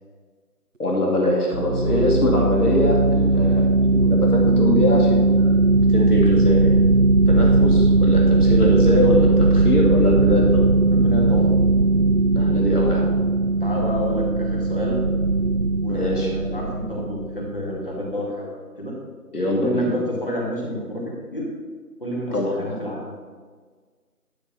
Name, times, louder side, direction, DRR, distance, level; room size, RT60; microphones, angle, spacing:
voice 1, 0.8-5.6 5.9-6.8 7.3-10.7 12.3-13.0 15.9-16.3 19.3-19.9 22.3-22.6, left 1 dB, 70° left, -2 dB, 2.1 m, -23 dB
sound 1, 1.5-17.8, right 2 dB, 55° right, 0.5 m, -18 dB
voice 2, 10.9-11.5 13.6-15.0 15.7-18.5 18.8-18.9 19.5-21.0 21.3-21.5 22.0-23.0, equal, 35° left, -4 dB, 2.1 m, -29 dB
11.5 x 4.0 x 5.9 m, 1.5 s
figure-of-eight pair, 175°, 47 cm